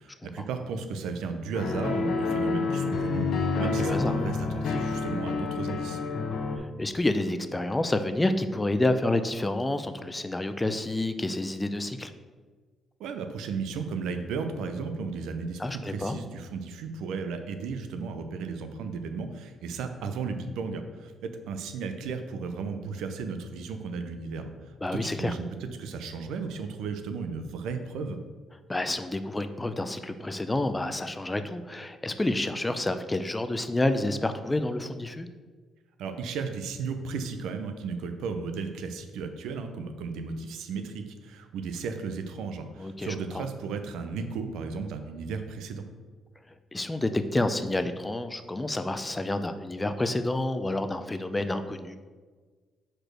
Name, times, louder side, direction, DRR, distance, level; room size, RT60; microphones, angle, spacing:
voice 1, 0.0-6.0 13.0-28.2 36.0-45.8, right 5 dB, 85° right, 7 dB, 0.6 m, -34 dB
sound 1, 1.5-6.6, left 4 dB, 70° left, 0.8 m, -28 dB
voice 2, 3.6-4.1 6.5-12.1 15.6-16.2 24.8-25.3 28.7-35.3 42.8-43.4 46.7-52.0, left 2 dB, 15° left, 9 dB, 0.5 m, -29 dB
5.0 x 4.4 x 6.1 m, 1.4 s
cardioid pair, 90°, 0 cm